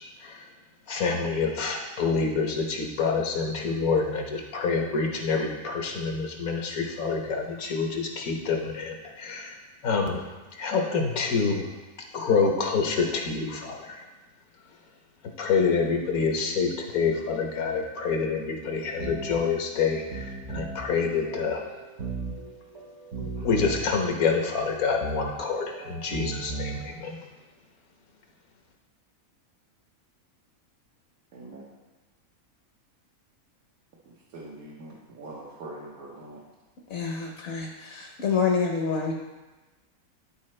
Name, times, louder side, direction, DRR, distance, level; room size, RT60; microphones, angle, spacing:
voice 1, 0.9-9.5 9.8-10.3 10.5-11.7 12.1-14.0 15.4-21.6 23.2-27.2, left 5 dB, 75° left, 2 dB, 1.4 m, -27 dB
sound 1, 18.8-26.9, right 3 dB, 60° right, 1.1 m, -37 dB
voice 2, 31.3-31.6 34.3-36.4, right 2 dB, 85° right, -5 dB, 1.5 m, -43 dB
voice 3, 36.9-39.1, left 5 dB, 55° left, 1 dB, 1.0 m, -27 dB
11.5 x 4.3 x 3.2 m, 1.2 s
omnidirectional pair, 1.5 m